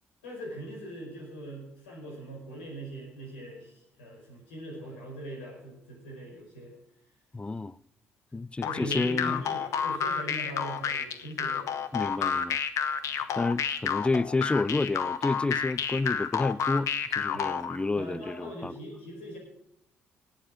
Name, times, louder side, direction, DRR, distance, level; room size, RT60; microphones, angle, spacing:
voice 1, 0.2-6.7 8.6-11.7 13.2-13.3 17.3-17.5 17.9-19.4, right 1 dB, 90° left, 4.9 m, -41 dB
voice 2, 7.3-7.7 8.3-9.4 11.9-12.6 13.4-16.9 17.2-18.7, left 3 dB, 20° left, 0.5 m, -29 dB
sound 1, 8.6-17.8, left 7 dB, 65° left, 0.9 m, -30 dB
18.5 x 7.9 x 5.0 m
hypercardioid pair, 50°, 6 cm